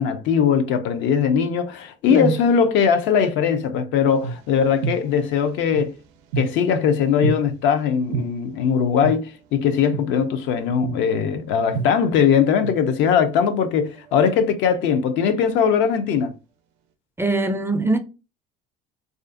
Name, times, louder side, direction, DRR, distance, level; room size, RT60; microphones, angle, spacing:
voice 1, 0.0-5.9 6.4-16.3, left 7 dB, 65° left, 0.5 m, -20 dB
sound 1, 4.1-6.8 7.2-7.3 8.1-8.2 9.0-9.1 9.9-10.0 10.8-10.9 11.7-13.3 13.6-15.3, right 6 dB, 85° right, 0.4 m, -30 dB
voice 2, 17.2-18.0, right 2 dB, 10° right, 0.3 m, -21 dB
2.5 x 2.4 x 2.4 m
supercardioid pair, 85°, 21 cm